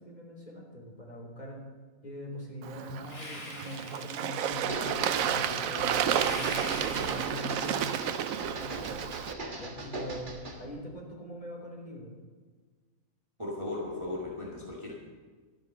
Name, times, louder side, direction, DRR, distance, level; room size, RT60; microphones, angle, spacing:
voice 1, 0.0-1.6 2.0-7.9 8.4-9.1 9.6-12.1, equal, 30° left, -2 dB, 3.3 m, -42 dB
Bird / Water, 2.6-9.3, right 9 dB, 90° right, 1.1 m, -31 dB
sound 1, 3.0-4.7 6.1-8.2, left 2 dB, 75° left, 3.5 m, -44 dB
sound 2, 4.5-10.7, right 1 dB, 40° right, 1.6 m, -40 dB
voice 2, 13.4-15.0, left 2 dB, 20° right, -4 dB, 2.0 m, -36 dB
12.5 x 10.5 x 6.5 m, 1.4 s
omnidirectional pair, 1.4 m